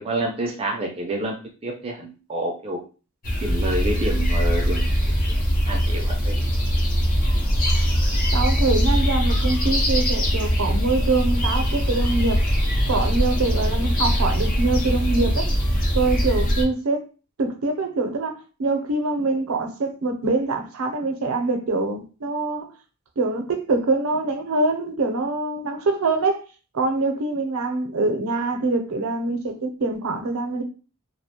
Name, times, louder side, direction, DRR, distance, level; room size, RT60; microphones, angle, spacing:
voice 1, 0.0-1.4 1.6-2.8 3.4-4.8 5.7-6.5, right 1 dB, 25° right, 0.4 m, -28 dB
sound 1, 3.2-16.6, equal, 40° left, 0.7 m, -21 dB
voice 2, 8.3-12.4 12.9-15.5 15.9-17.0 17.4-22.7 23.2-26.4 26.7-30.6, right 3 dB, 85° right, 0.5 m, -24 dB
2.3 x 2.1 x 2.7 m
head